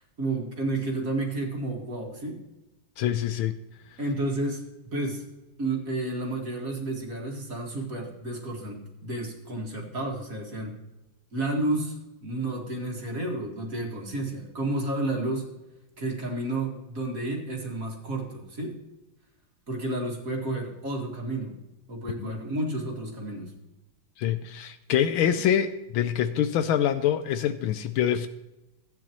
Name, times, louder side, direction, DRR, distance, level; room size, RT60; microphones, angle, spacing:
voice 1, 0.2-2.4 4.0-4.6 4.9-5.2 5.6-10.8 11.3-15.5 16.0-18.7 19.7-21.6 21.9-23.5, right 2 dB, 40° right, 0 dB, 2.2 m, -31 dB
voice 2, 3.0-3.6 22.2-22.3 24.2-28.3, left 9 dB, 75° left, 10 dB, 1.3 m, -25 dB
15.5 x 9.3 x 3.0 m, 1.0 s
omnidirectional pair, 2.4 m